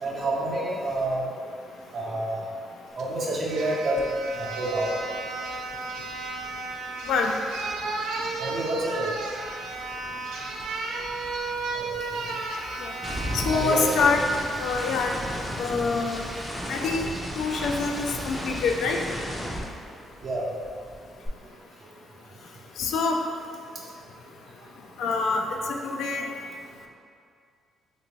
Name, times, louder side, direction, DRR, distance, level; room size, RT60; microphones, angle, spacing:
voice 1, 0.0-1.2 1.9-2.4 3.0-4.1 4.4-4.9 8.4-9.1 11.8-11.9 13.5-13.8 20.2-20.4, right 2 dB, 55° right, -4 dB, 0.7 m, -28 dB
sound 1, 3.0-3.1 3.5-13.8 14.3-14.5, right 3 dB, 85° right, 0.3 m, -33 dB
sound 2, 4.0-4.2 4.4-8.8 9.1-20.4 20.6-21.3, equal, 10° left, 0.5 m, -36 dB
voice 2, 13.3-14.2 14.6-15.1 15.6-16.2 16.7-19.0 22.8-23.3 25.0-26.3, left 4 dB, 75° left, 2 dB, 0.3 m, -26 dB
3.2 x 2.6 x 3.0 m, 2.2 s
cardioid pair, 90°, 0 cm